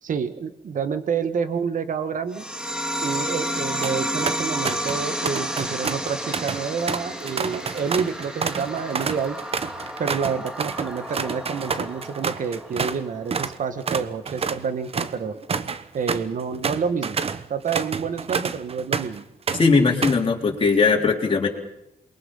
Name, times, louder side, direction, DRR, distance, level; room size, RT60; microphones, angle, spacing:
voice 1, 0.0-2.5 3.0-9.4 10.0-15.3 15.9-17.2 17.5-19.2, right 6 dB, 60° right, 10 dB, 1.7 m, -28 dB
sound 1, 2.3-13.3, equal, 5° right, 2.2 m, -31 dB
sound 2, 3.8-4.0 4.3-5.0 5.3-13.0 13.3-13.6 13.9-19.2 19.5-20.3, right 5 dB, 40° right, 1.0 m, -29 dB
voice 2, 19.5-21.5, left 4 dB, 35° left, 0 dB, 3.7 m, -19 dB
28.0 x 22.5 x 5.7 m, 0.82 s
wide cardioid pair, 140°, 15 cm